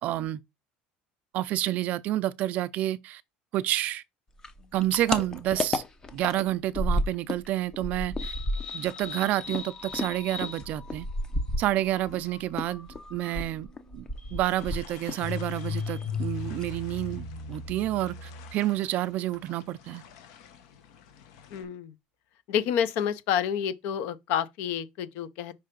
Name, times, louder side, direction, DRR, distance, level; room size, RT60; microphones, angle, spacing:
voice 1, 0.0-0.4 1.3-3.2 3.5-4.0 4.7-5.8 6.1-8.3 8.7-11.1 11.6-13.7 13.9-20.0, right 14 dB, 45° right, 0.4 m, -29 dB
sound 1, 4.4-7.5 7.7-12.2 12.5-15.3 15.6-16.3 16.6-16.8 17.1-17.2 17.5-18.1, left 1 dB, 20° left, 0.6 m, -32 dB
sound 2, 8.2-18.8, left 5 dB, 40° left, 1.5 m, -39 dB
sound 3, 14.4-21.6, left 8 dB, 85° left, 1.2 m, -52 dB
voice 2, 21.5-21.9 22.5-25.5, left 9 dB, 65° left, 0.7 m, -29 dB
5.5 x 3.3 x 5.2 m
cardioid pair, 160°, 3 cm